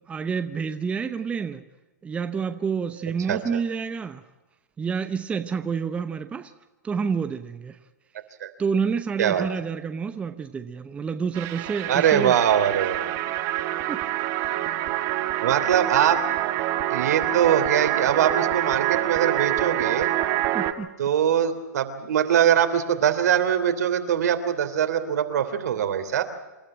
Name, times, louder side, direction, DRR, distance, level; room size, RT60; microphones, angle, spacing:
voice 1, 0.1-1.6 2.0-4.2 4.8-6.5 6.8-7.8 8.6-12.4 13.9-14.1 14.4-14.6 20.5-20.9, right 6 dB, 15° right, 0.9 m, -28 dB
voice 2, 3.3-3.6 8.4-8.5 9.2-9.5 11.9-13.2 15.4-16.2 16.9-20.1 21.0-26.2, right 9 dB, 65° right, 3.1 m, -22 dB
sound 1, 11.3-20.7, right 13 dB, 35° right, 1.7 m, -26 dB
27.5 x 12.5 x 8.8 m
hypercardioid pair, 130°, 9 cm